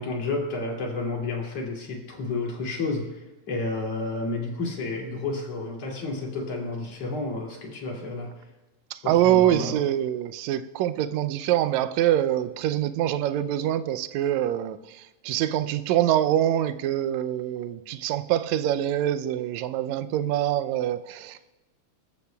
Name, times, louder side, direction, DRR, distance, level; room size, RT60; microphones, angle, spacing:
voice 1, 0.0-8.3 9.0-9.8, left 3 dB, 55° left, -1 dB, 3.6 m, -31 dB
voice 2, 8.9-21.5, right 12 dB, 80° right, 11 dB, 1.8 m, -25 dB
25.5 x 14.0 x 2.3 m, 1.1 s
omnidirectional pair, 3.3 m